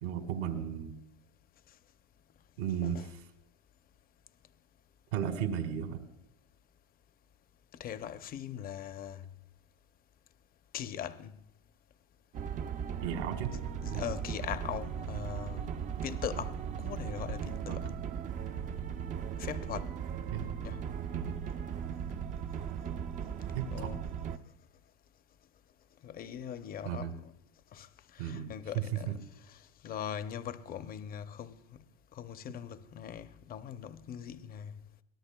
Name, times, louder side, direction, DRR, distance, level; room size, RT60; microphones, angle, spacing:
voice 1, 0.0-0.9 2.6-3.1 5.1-6.0 13.0-13.5 13.9-14.0 17.7-17.8 20.3-20.5 21.1-21.4 23.5-23.9 26.8-27.1 28.2-29.2, right 9 dB, 80° right, 2.1 m, -34 dB
voice 2, 7.7-9.2 10.7-11.3 13.8-15.7 16.0-18.0 19.4-19.9 20.6-20.8 23.7-24.0 26.0-27.3 27.7-27.9 28.1-29.2 29.5-31.6 32.1-34.7, left 9 dB, 25° left, 0.6 m, -41 dB
sound 1, 12.3-24.4, right 7 dB, 25° right, 0.4 m, -37 dB
23.5 x 18.0 x 2.2 m
supercardioid pair, 130°, 35 cm